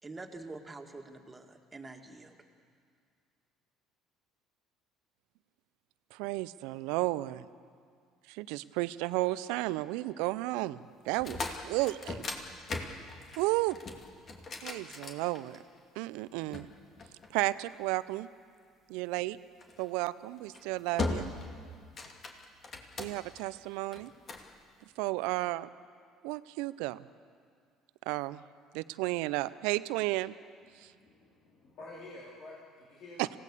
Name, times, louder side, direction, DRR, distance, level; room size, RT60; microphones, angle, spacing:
voice 1, 0.0-2.4, right 3 dB, 20° right, 3 dB, 2.5 m, -46 dB
voice 2, 6.1-7.5 8.3-12.2 13.4-13.8 14.6-15.6 16.0-16.7 17.3-18.3 18.9-19.4 19.8-21.3 23.0-24.1 25.0-25.7 26.2-27.0 28.1-28.4 28.7-30.3 33.2-33.3, right 19 dB, 70° right, 16 dB, 0.6 m, -33 dB
sound 1, 11.1-15.8 16.5-17.8 19.6-19.9 20.4-20.6 21.0-21.5 21.8-23.4 23.9-24.5, left 3 dB, 40° left, 2.6 m, -38 dB
voice 3, 30.7-33.3, left 2 dB, 60° left, -5 dB, 3.7 m, -50 dB
26.0 x 17.0 x 6.8 m, 2.1 s
hypercardioid pair, 60°, 0 cm